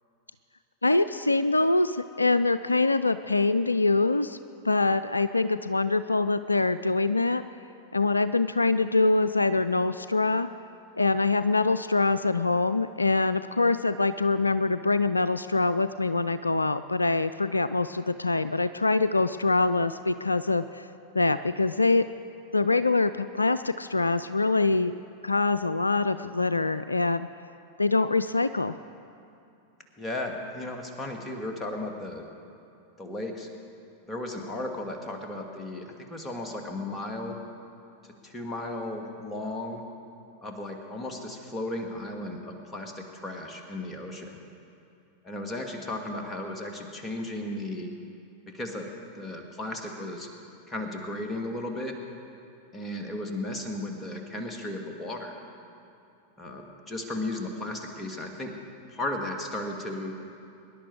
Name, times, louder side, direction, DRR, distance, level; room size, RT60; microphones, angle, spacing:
voice 1, 0.8-4.4 4.6-7.4 7.9-10.5 11.0-20.9 21.1-22.1 22.5-24.9 25.2-27.3 27.8-28.7, left 3 dB, 80° left, 13 dB, 0.3 m, -24 dB
voice 2, 30.0-32.2 33.0-33.5 34.1-35.8 36.1-37.4 38.2-39.8 40.4-44.4 45.2-47.9 48.5-48.9 49.2-50.3 50.7-51.9 52.7-55.3 56.4-58.5 58.9-60.2, left 1 dB, 15° left, 2 dB, 2.2 m, -35 dB
23.5 x 11.0 x 4.8 m, 2.7 s
figure-of-eight pair, 90°, 0 cm